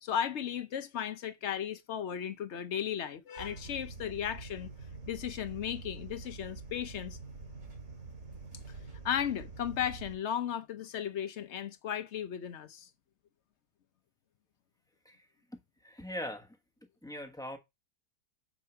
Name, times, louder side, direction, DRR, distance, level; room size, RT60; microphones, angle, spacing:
voice 1, 0.0-4.7 5.1-7.2 9.0-12.9, left 9 dB, 55° left, 0.9 m, -35 dB
sound 1, 3.4-10.1, right 4 dB, 55° right, 2.8 m, -46 dB
voice 2, 15.0-16.6 17.0-17.6, equal, 5° left, 1.1 m, -42 dB
7.4 x 5.6 x 4.5 m
omnidirectional pair, 1.7 m